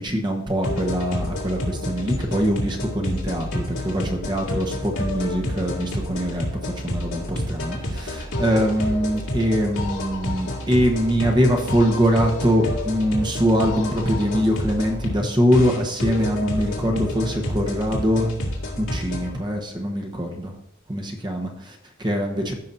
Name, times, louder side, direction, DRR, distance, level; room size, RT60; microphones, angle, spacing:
voice 1, 0.0-18.3 18.8-20.5 20.9-22.5, equal, 25° right, 2 dB, 1.2 m, -23 dB
sound 1, 0.6-19.4, left 1 dB, 85° left, 2.2 m, -29 dB
14.5 x 5.9 x 2.7 m, 0.77 s
head